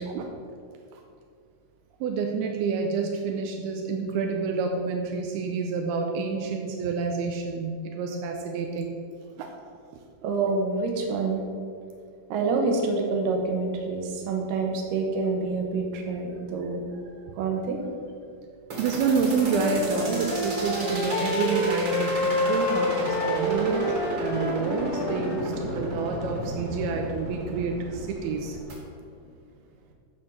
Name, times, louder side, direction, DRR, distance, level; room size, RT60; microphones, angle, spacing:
voice 1, 2.0-8.9 9.4-9.5 18.8-28.6, right 5 dB, 85° right, 2 dB, 2.5 m, -28 dB
voice 2, 10.2-11.4 12.3-16.8 17.4-17.8, right 3 dB, 70° right, 2 dB, 2.6 m, -27 dB
sound 1, 18.7-28.7, right 1 dB, 40° right, 1.9 m, -34 dB
Wind instrument woodwind instrument, 19.1-25.5, left 1 dB, 80° left, 3.1 m, -28 dB
11.5 x 4.4 x 6.4 m, 2.3 s
omnidirectional pair, 4.5 m